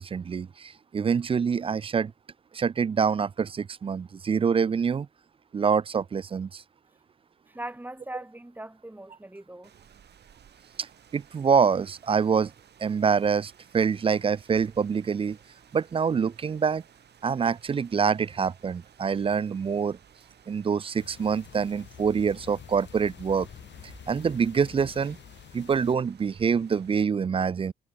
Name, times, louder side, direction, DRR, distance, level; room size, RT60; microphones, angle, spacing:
voice 1, 0.0-2.1 2.5-5.1 5.5-6.6 10.8-10.9 11.1-12.5 12.8-15.4 15.7-16.8 17.2-20.0 20.5-23.5 24.1-25.2 25.5-27.7, right 6 dB, 30° right, 0.4 m, -25 dB
voice 2, 7.5-9.7, right 1 dB, 10° right, 5.3 m, -40 dB
Rain, 9.6-27.0, right 8 dB, 60° right, 6.8 m, -57 dB
sound 1, 21.0-26.0, left 10 dB, 65° left, 3.8 m, -48 dB
cardioid pair, 90°, 20 cm